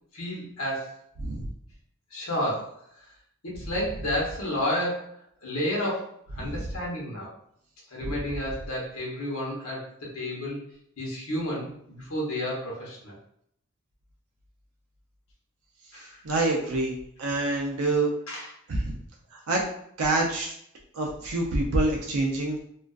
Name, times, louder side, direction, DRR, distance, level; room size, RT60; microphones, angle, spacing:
voice 1, 0.1-1.0 2.1-2.8 3.4-5.1 5.4-7.3 7.9-10.6 11.0-13.1 15.9-16.2 18.3-18.5, left 1 dB, 85° left, -3 dB, 0.9 m, -31 dB
voice 2, 1.2-1.5 6.4-6.7 8.0-8.1 16.2-18.1 18.7-18.9 19.3-19.6 20.0-20.5 20.9-22.6, right 2 dB, 85° right, -1 dB, 0.5 m, -26 dB
2.4 x 2.2 x 2.3 m, 0.69 s
head